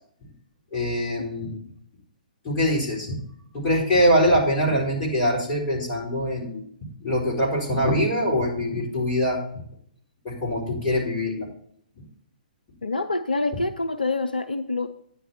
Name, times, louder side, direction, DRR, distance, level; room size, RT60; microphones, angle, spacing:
voice 1, 0.7-1.6 2.4-3.2 3.5-6.6 7.0-9.6 10.2-11.5, equal, 25° left, -3 dB, 4.3 m, -23 dB
voice 2, 12.8-14.9, left 3 dB, 80° left, 8 dB, 0.6 m, -26 dB
10.0 x 8.0 x 4.4 m, 0.63 s
figure-of-eight pair, 120°, 5 cm